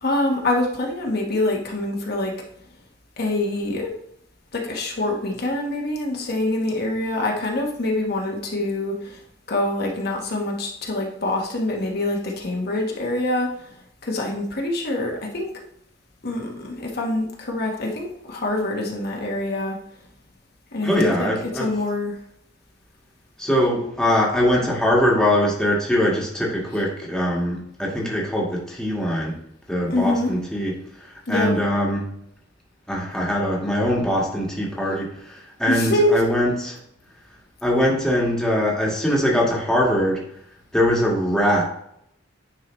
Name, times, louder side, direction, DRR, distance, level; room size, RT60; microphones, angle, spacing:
voice 1, 0.0-2.3 3.2-3.9 4.5-9.2 9.5-13.7 14.0-15.5 16.2-19.8 20.7-21.3 21.5-22.1 29.9-30.3 31.3-31.5 35.7-36.1, left 2 dB, 55° left, -1 dB, 1.3 m, -25 dB
voice 2, 20.8-21.7 23.4-29.4 29.7-32.2 32.9-36.8 37.6-40.2 40.7-41.7, equal, 5° left, -4 dB, 1.7 m, -22 dB
10.0 x 4.7 x 3.1 m, 0.72 s
head